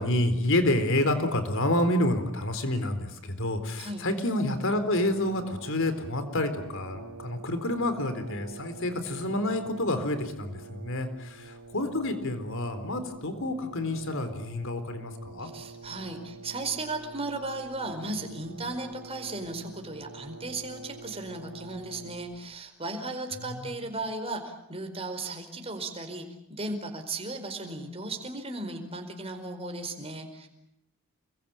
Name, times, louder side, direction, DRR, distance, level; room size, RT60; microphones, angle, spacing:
voice 1, 0.0-15.5 23.4-23.8, left 1 dB, 60° left, 9 dB, 4.1 m, -28 dB
Brass instrument, 4.7-22.5, right 3 dB, 75° right, 3.7 m, -46 dB
voice 2, 15.4-30.5, right 2 dB, 25° right, 5 dB, 4.7 m, -36 dB
29.0 x 22.0 x 9.0 m, 0.84 s
head